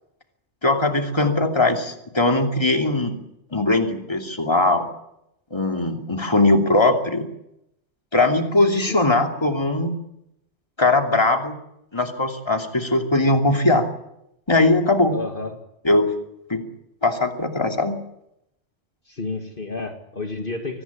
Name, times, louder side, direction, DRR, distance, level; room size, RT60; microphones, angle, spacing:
voice 1, 0.6-3.2 3.5-4.9 5.5-7.3 8.1-10.0 10.8-11.5 11.9-13.9 14.5-15.1 15.8-16.1 16.5-16.6 17.0-18.0, left 2 dB, 20° left, 3 dB, 2.7 m, -20 dB
voice 2, 15.1-15.6 19.1-20.8, left 3 dB, 45° left, 3 dB, 2.2 m, -31 dB
24.5 x 19.0 x 8.5 m, 0.83 s
omnidirectional pair, 1.2 m